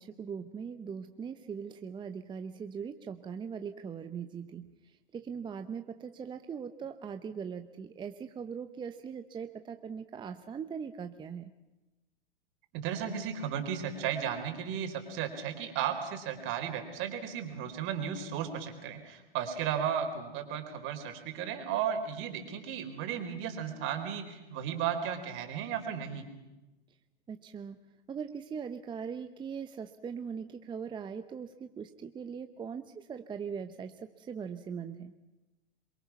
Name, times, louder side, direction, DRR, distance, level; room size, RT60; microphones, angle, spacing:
voice 1, 0.0-4.7 5.1-11.5 27.3-27.8 28.1-35.1, right 6 dB, 15° right, 8 dB, 0.8 m, -40 dB
voice 2, 12.7-26.3, right 8 dB, 40° right, 6 dB, 4.0 m, -34 dB
26.5 x 23.0 x 6.0 m, 1.0 s
hypercardioid pair, 115°, 31 cm